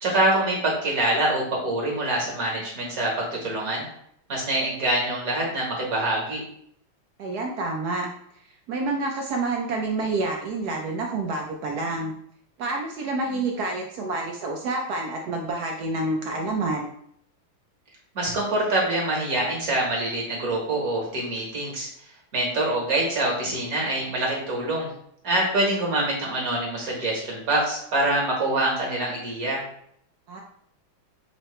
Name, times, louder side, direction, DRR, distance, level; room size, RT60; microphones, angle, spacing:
voice 1, 0.0-3.8 4.3-6.4 18.1-21.9 22.3-24.9 25.2-29.6, right 1 dB, 45° right, -2 dB, 1.7 m, -25 dB
voice 2, 7.2-8.1 8.7-12.1 12.6-16.9 30.3-30.4, right 2 dB, 75° right, 1 dB, 0.9 m, -28 dB
5.8 x 2.9 x 3.1 m, 0.69 s
omnidirectional pair, 2.3 m